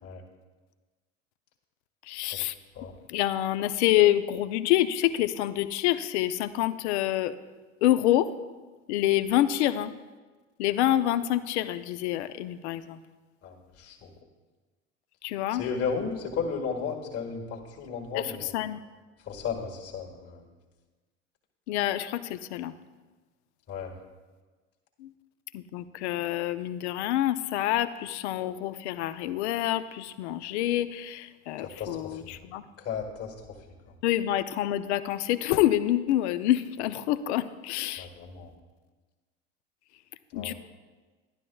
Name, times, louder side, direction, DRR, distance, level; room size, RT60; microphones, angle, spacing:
voice 1, 2.1-2.5 3.1-7.4 7.8-8.3 8.9-9.9 10.6-13.0 15.2-15.6 18.1-18.8 21.7-22.7 25.0-25.1 25.5-32.6 34.0-38.1 40.3-40.5, left 13 dB, 65° left, 13 dB, 0.6 m, -27 dB
voice 2, 13.4-14.1 15.5-18.5 19.2-20.4 23.7-23.9 31.6-32.3 32.8-33.3 38.0-38.5 40.3-40.5, left 6 dB, 40° left, 0 dB, 1.7 m, -34 dB
11.5 x 11.5 x 2.3 m, 1.3 s
hypercardioid pair, 75°, 37 cm